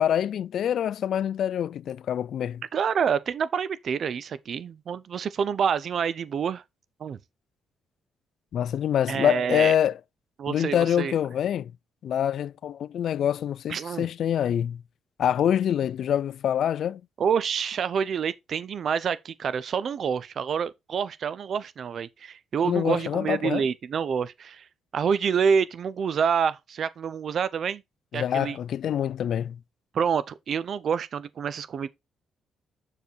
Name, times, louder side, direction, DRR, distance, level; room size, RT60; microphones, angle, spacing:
voice 1, 0.0-2.6 8.5-10.0 10.5-11.7 12.0-14.8 15.2-17.0 22.6-23.7 28.1-29.6, left 10 dB, 65° left, 0.3 m, -25 dB
voice 2, 2.7-6.6 7.0-7.2 9.1-9.8 10.4-11.1 13.7-14.1 17.2-24.6 24.9-27.8 28.1-28.6 29.9-31.9, right 7 dB, 55° right, 0.5 m, -27 dB
6.7 x 4.8 x 4.4 m
cardioid pair, 90°, 0 cm